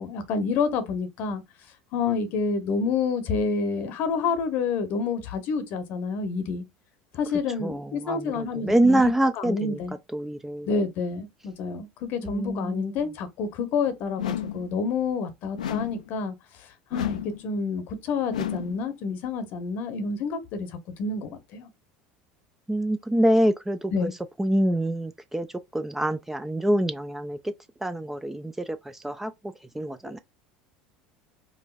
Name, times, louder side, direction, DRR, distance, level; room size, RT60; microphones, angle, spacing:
voice 1, 0.0-1.4 1.9-6.6 7.1-9.0 9.3-9.9 10.7-21.7 23.9-24.1, left 4 dB, 55° left, 0.8 m, -28 dB
voice 2, 7.6-9.8 10.1-10.7 12.2-12.9 22.7-24.1 24.4-25.5 25.7-27.5 27.8-29.3 29.7-30.2, right 1 dB, 10° right, 0.4 m, -25 dB
sound 1, 14.2-14.7 15.6-16.1 16.9-17.4 18.3-18.8, left 10 dB, 80° left, 0.4 m, -31 dB
4.8 x 2.5 x 2.4 m
figure-of-eight pair, 70°, 4 cm